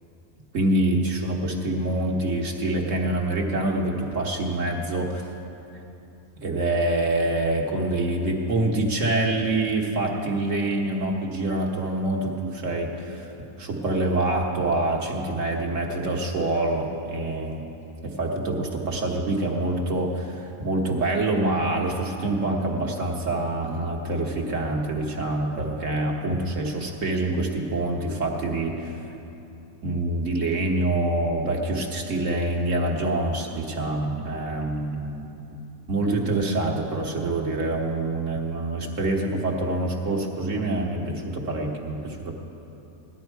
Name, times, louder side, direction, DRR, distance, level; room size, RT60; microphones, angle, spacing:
voice 1, 0.5-5.2 6.4-13.3 13.6-17.6 18.0-28.9 29.8-35.3 35.9-42.3, right 2 dB, 55° right, 0 dB, 1.5 m, -26 dB
17.5 x 11.5 x 4.6 m, 2.9 s
omnidirectional pair, 1.6 m